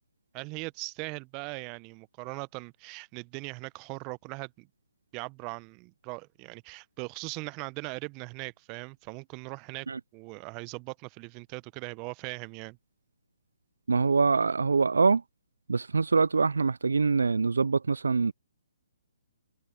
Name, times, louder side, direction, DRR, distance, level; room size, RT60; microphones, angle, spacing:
voice 1, 0.3-4.7 5.1-9.9 10.1-12.8, right 29 dB, 25° right, 0.8 m, -40 dB
voice 2, 13.9-15.2 15.7-18.3, right 4 dB, 75° right, 0.3 m, -24 dB
figure-of-eight pair, 135°, 0 cm